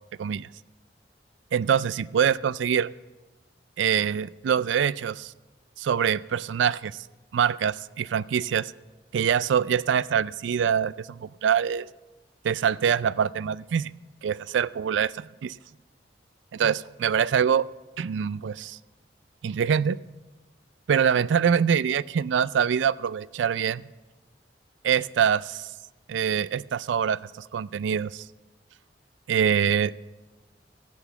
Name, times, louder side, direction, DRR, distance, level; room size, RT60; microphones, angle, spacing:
voice 1, 1.5-2.9 3.8-5.3 5.8-6.9 7.3-8.7 9.1-11.9 12.4-13.9 14.2-15.6 16.5-17.7 18.0-18.8 19.4-20.0 20.9-23.8 24.8-25.7 26.1-28.3 29.3-29.9, right 8 dB, 90° right, 20 dB, 0.3 m, -24 dB
13.5 x 8.3 x 7.1 m, 1.2 s
head